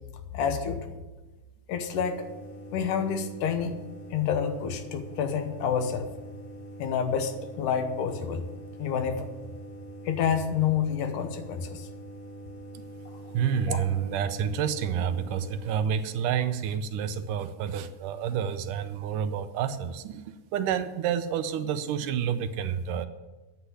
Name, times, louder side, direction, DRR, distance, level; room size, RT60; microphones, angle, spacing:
voice 1, 0.3-0.9 1.7-2.3 2.7-3.7 4.1-6.1 6.8-8.4 8.8-9.3 10.1-11.9 13.7-13.9, left 7 dB, 75° left, 8 dB, 2.4 m, -28 dB
sound 1, 1.9-15.8, right 1 dB, 45° left, 4.8 m, -44 dB
voice 2, 13.3-20.2 20.5-23.1, right 8 dB, 80° right, 10 dB, 2.1 m, -29 dB
10.0 x 8.0 x 9.6 m, 1.2 s
omnidirectional pair, 3.8 m